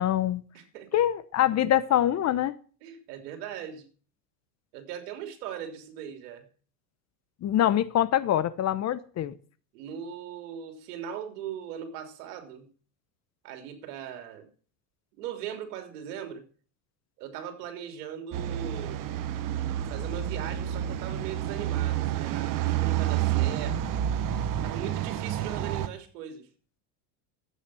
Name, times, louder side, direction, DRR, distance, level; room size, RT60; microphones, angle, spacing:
voice 1, 0.0-0.4 0.9-2.5 7.4-9.3, left 11 dB, 35° left, 16 dB, 0.9 m, -24 dB
voice 2, 0.5-0.9 2.8-3.8 4.7-6.4 9.7-12.7 13.4-14.5 15.2-16.5 17.2-19.1 19.9-24.0 24.6-26.5, right 9 dB, 75° right, 7 dB, 3.4 m, -39 dB
sound 1, 18.3-25.9, right 11 dB, 45° right, 1.4 m, -29 dB
13.5 x 8.9 x 6.3 m, 0.40 s
supercardioid pair, 120°, 46 cm